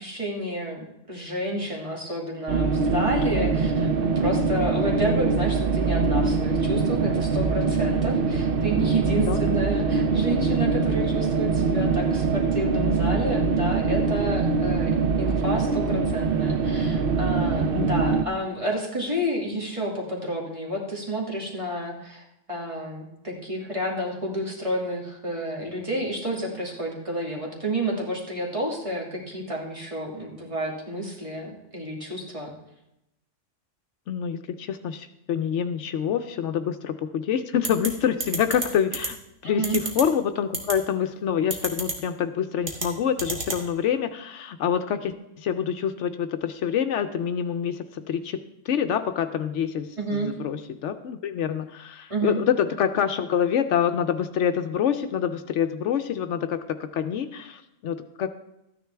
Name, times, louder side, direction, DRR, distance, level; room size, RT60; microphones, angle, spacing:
voice 1, 0.0-32.5 39.4-39.8 50.0-50.3 52.1-52.4, right 1 dB, 25° right, -2 dB, 2.3 m, -30 dB
sound 1, 2.5-18.3, right 4 dB, 55° right, 0.7 m, -23 dB
voice 2, 34.1-39.2 39.4-48.4 48.7-58.3, left 8 dB, 75° left, 9 dB, 0.9 m, -26 dB
sound 2, 37.6-37.9 38.2-38.7 38.9-39.1 39.6-40.0 40.5-40.7 41.5-41.9 42.6-42.9 43.2-43.6, right 3 dB, 85° right, 2.0 m, -27 dB
13.5 x 9.7 x 3.4 m, 0.87 s
omnidirectional pair, 1.3 m